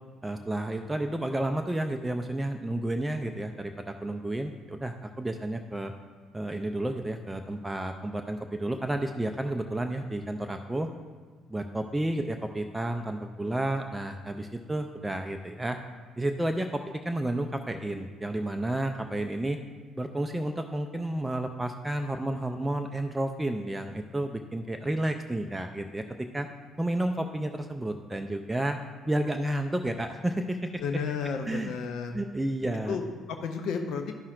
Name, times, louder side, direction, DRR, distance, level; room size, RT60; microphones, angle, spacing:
voice 1, 0.2-5.9 6.3-10.9 11.5-15.8 16.2-19.6 20.0-26.0 26.3-26.5 26.8-28.8 29.1-30.8 31.5-31.7 32.1-33.0, right 1 dB, 10° right, 5 dB, 0.4 m, -31 dB
voice 2, 30.8-32.2 32.9-34.1, left 5 dB, 60° left, 5 dB, 0.5 m, -32 dB
11.5 x 5.6 x 2.5 m, 1.5 s
figure-of-eight pair, 50°, 0 cm